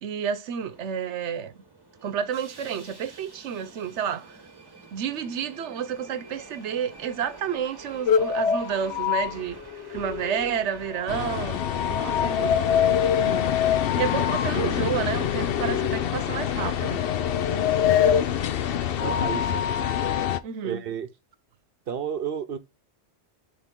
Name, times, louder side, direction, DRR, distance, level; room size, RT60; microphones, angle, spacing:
voice 1, 0.0-1.5 2.0-4.3 4.9-9.6 9.9-12.6 13.2-13.6 14.0-17.0 20.4-20.8, right 8 dB, 85° right, 1.1 m, -30 dB
Subway metro underground, 0.6-18.5, right 3 dB, 20° right, 1.4 m, -48 dB
sound 1, 8.1-10.6 10.9-18.2, left 9 dB, 85° left, 0.9 m, -25 dB
sound 2, 11.1-20.4, left 9 dB, 60° left, 0.8 m, -27 dB
voice 2, 19.0-19.6 20.6-21.1 21.9-22.6, right 8 dB, 60° right, 0.9 m, -32 dB
9.9 x 3.7 x 3.7 m
omnidirectional pair, 1.1 m